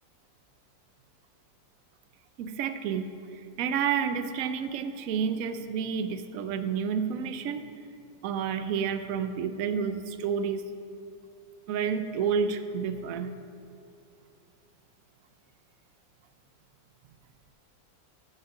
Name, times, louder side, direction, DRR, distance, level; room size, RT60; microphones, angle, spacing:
voice 1, 2.4-7.6 8.2-10.6 11.7-13.3, right 7 dB, 75° right, 10 dB, 0.7 m, -30 dB
7.5 x 7.4 x 7.2 m, 2.7 s
omnidirectional pair, 2.0 m